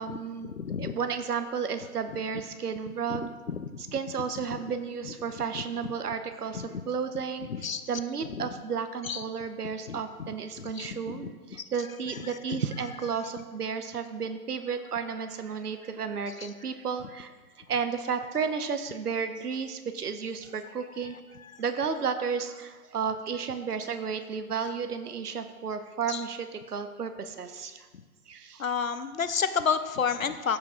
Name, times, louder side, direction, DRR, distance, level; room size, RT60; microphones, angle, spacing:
voice 1, 0.0-0.5 0.8-3.3 3.8-17.3 17.7-21.2 21.6-27.9 28.3-28.8, right 6 dB, 75° right, 9 dB, 0.9 m, -33 dB
voice 2, 0.6-0.9 3.5-3.6 7.6-7.8 9.1-9.2 9.9-10.0 10.8-10.9 26.1-26.2 28.6-30.6, left 6 dB, 60° left, 11 dB, 0.7 m, -29 dB
14.0 x 5.2 x 3.7 m, 1.4 s
hypercardioid pair, 180°, 46 cm